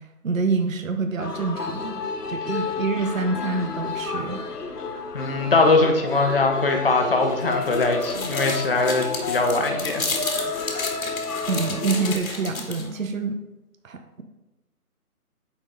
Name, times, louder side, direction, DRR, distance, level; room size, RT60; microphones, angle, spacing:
voice 1, 0.2-2.0 2.3-4.4 11.5-13.4 13.8-14.2, right 4 dB, 60° right, 7 dB, 0.8 m, -26 dB
sound 1, 1.2-12.2, left 4 dB, 85° left, 1.0 m, -31 dB
voice 2, 5.1-10.0, left 3 dB, 40° left, 4 dB, 0.8 m, -21 dB
sound 2, 7.3-13.0, left 3 dB, 65° left, 1.4 m, -32 dB
9.0 x 4.1 x 3.7 m, 1.0 s
figure-of-eight pair, 165°, 46 cm